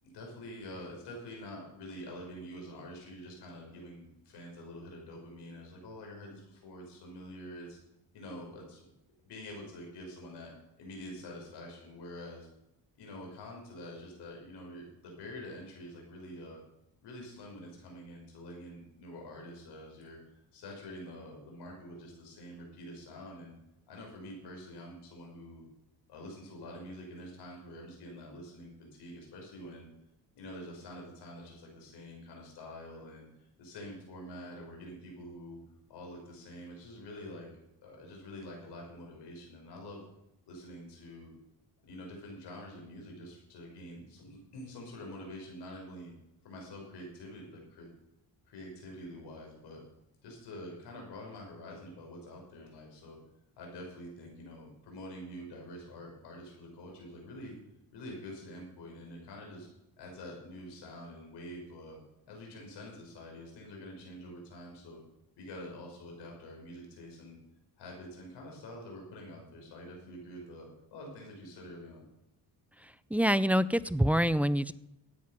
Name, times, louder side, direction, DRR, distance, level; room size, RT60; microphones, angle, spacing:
voice 1, 0.0-7.8 8.1-8.8 9.2-10.5 10.8-12.5 13.0-16.6 17.0-23.5 23.9-25.6 26.1-29.9 30.3-35.6 35.9-37.5 37.8-40.0 40.5-41.3 41.8-46.1 46.4-47.9 48.5-49.8 50.2-53.2 53.6-57.5 57.9-59.7 60.0-62.0 62.3-65.0 65.4-67.4 67.8-72.0, left 1 dB, 80° left, 0 dB, 5.9 m, -46 dB
voice 2, 72.8-74.7, equal, 5° right, 17 dB, 0.4 m, -26 dB
13.5 x 9.4 x 5.8 m, 0.86 s
cardioid pair, 95°, 40 cm